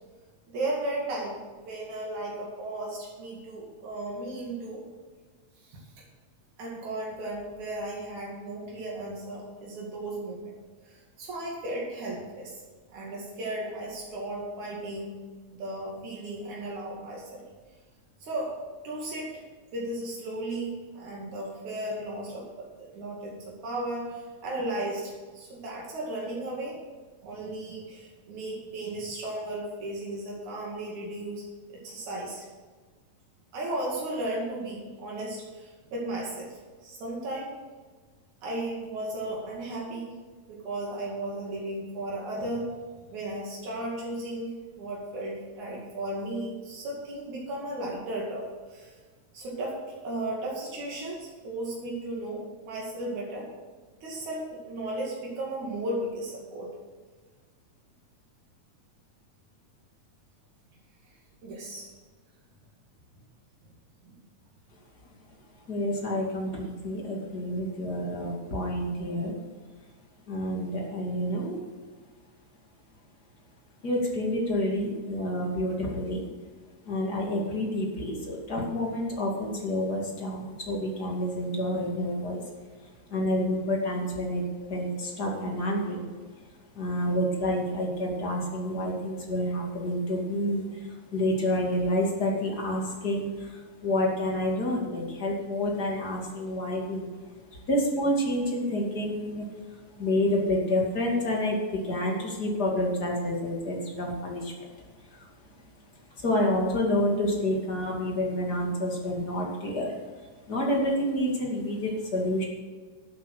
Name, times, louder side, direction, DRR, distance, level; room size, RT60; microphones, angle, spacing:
voice 1, 0.5-4.8 5.7-5.8 6.6-10.5 10.8-12.5 12.9-15.1 15.5-17.4 18.2-18.5 18.8-19.4 19.7-26.8 27.2-31.4 31.7-32.5 33.5-37.5 38.4-40.1 40.5-42.7 43.1-49.0 49.3-53.5 54.0-56.7 61.4-61.9 64.0-64.2, right 1 dB, 80° right, -3 dB, 3.7 m, -35 dB
voice 2, 65.7-69.4 70.3-71.6 73.8-76.3 76.9-82.4 83.1-84.4 84.7-86.1 86.8-97.1 97.5-99.5 100.0-104.7 105.1-105.3 106.1-109.9 110.5-112.4, left 1 dB, 35° left, -1 dB, 2.7 m, -28 dB
12.0 x 8.2 x 6.5 m, 1.4 s
omnidirectional pair, 3.4 m